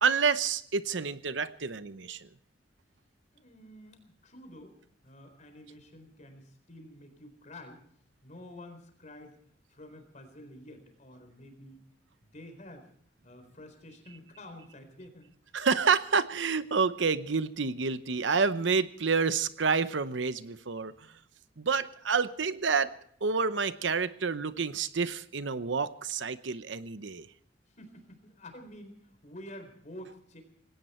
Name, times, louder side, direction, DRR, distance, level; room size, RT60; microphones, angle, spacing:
voice 1, 0.0-2.3 15.5-20.9 21.6-23.0 23.2-27.3, right 5 dB, 80° right, 13 dB, 0.8 m, -28 dB
voice 2, 3.3-4.8 5.0-7.8 8.2-9.3 9.7-11.8 12.2-12.9 13.2-15.3 27.7-30.4, left 1 dB, 45° left, 6 dB, 4.2 m, -49 dB
19.0 x 17.5 x 4.4 m, 0.63 s
head